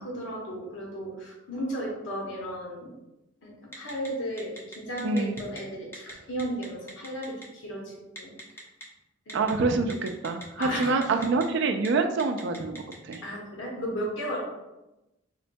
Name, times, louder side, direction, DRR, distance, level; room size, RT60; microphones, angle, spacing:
voice 1, 0.0-2.9 3.4-8.6 9.3-9.5 10.6-10.9 13.2-14.4, equal, 70° left, -3 dB, 0.9 m, -35 dB
Telephone, 3.7-4.1 4.4-5.6 5.9-6.1 6.4-7.4 8.2-8.8 9.3-9.5 9.9-11.4 11.7-11.9 12.2-13.2, equal, 10° left, 0.6 m, -41 dB
voice 2, 5.0-5.4 9.3-13.2, right 3 dB, 65° right, 6 dB, 0.3 m, -26 dB
4.4 x 2.2 x 2.6 m, 0.98 s
head